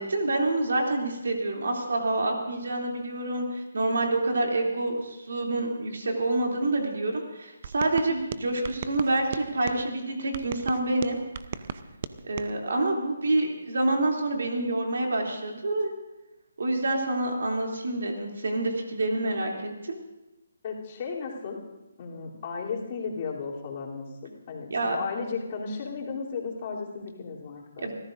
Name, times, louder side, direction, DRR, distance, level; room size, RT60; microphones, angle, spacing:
voice 1, 0.0-11.2 12.2-15.9 16.6-20.0 24.7-25.0 27.8-27.9, right 2 dB, 70° right, 1 dB, 3.0 m, -27 dB
sound 1, 7.6-9.8 10.3-12.5, right 7 dB, 45° right, 0.6 m, -37 dB
voice 2, 20.6-21.6 22.0-27.9, left 5 dB, 40° left, -4 dB, 3.3 m, -35 dB
27.5 x 14.0 x 2.6 m, 1.0 s
figure-of-eight pair, 150°, 0 cm